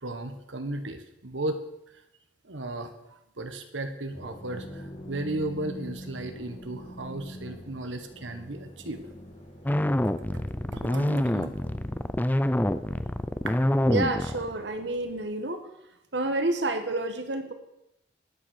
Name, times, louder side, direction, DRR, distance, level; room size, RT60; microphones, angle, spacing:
voice 1, 0.0-1.6 2.4-9.0 10.0-10.4 10.7-11.6, right 2 dB, 90° right, 7 dB, 1.4 m, -35 dB
sound 1, 4.1-15.2, equal, 40° left, 2.5 m, -45 dB
sound 2, 9.7-14.6, left 1 dB, 10° left, 0.5 m, -26 dB
voice 2, 13.9-15.7 16.1-17.5, right 2 dB, 65° right, 7 dB, 1.3 m, -29 dB
13.0 x 9.1 x 6.5 m, 0.85 s
head